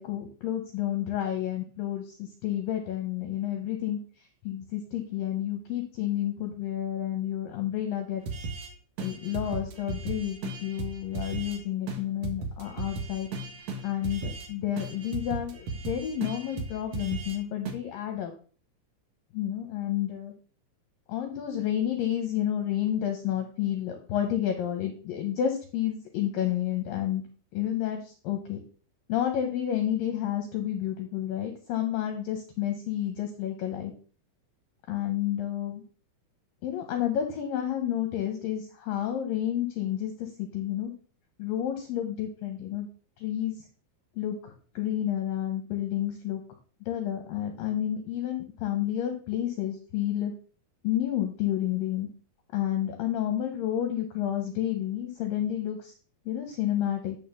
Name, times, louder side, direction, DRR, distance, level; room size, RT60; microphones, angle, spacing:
voice 1, 0.0-4.0 4.4-8.5 9.0-13.3 13.8-18.3 19.3-20.3 21.1-27.2 27.5-28.6 29.1-33.9 34.9-35.8 36.6-40.9 41.4-42.9 43.2-43.6 44.2-44.4 44.8-46.4 46.9-50.3 50.8-52.1 52.5-55.9 56.3-57.2, left 11 dB, 80° left, 5 dB, 2.1 m, -30 dB
sound 1, 8.3-8.7 9.0-11.6 11.9-12.0 12.2-14.5 14.8-17.4 17.6-17.7, right 3 dB, 85° right, 1.5 m, -36 dB
11.0 x 3.7 x 6.9 m, 0.41 s
omnidirectional pair, 5.3 m